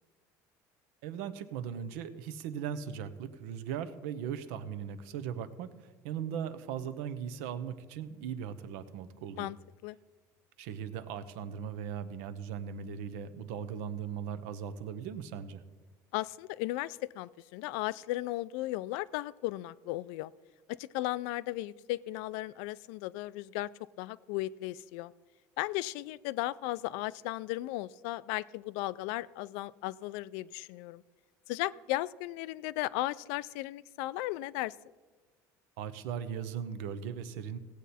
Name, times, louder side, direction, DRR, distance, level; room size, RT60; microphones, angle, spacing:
voice 1, 1.0-9.5 10.6-15.6 35.8-37.6, right 8 dB, 85° right, 12 dB, 0.8 m, -38 dB
voice 2, 16.1-20.3 20.7-23.7 24.0-25.1 25.6-31.0 31.5-34.7, left 17 dB, 85° left, 19 dB, 0.4 m, -36 dB
16.5 x 8.1 x 4.2 m, 1.3 s
cardioid pair, 130°, 8 cm